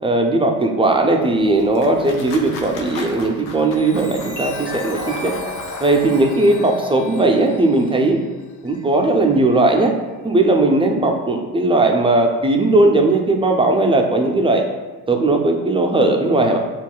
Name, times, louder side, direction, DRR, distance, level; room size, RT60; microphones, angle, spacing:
voice 1, 0.0-5.4 5.8-8.2 8.6-9.9 10.2-14.6 15.1-16.6, right 2 dB, 10° right, 2 dB, 0.4 m, -17 dB
sound 1, 1.3-6.2, left 2 dB, 90° left, 0.7 m, -37 dB
Chime, 3.6-9.5 10.1-10.3, left 1 dB, 65° left, 1.1 m, -38 dB
sound 2, 3.8-8.4, left 2 dB, 40° left, 0.8 m, -35 dB
7.0 x 2.4 x 2.2 m, 1.2 s
supercardioid pair, 70°, 45 cm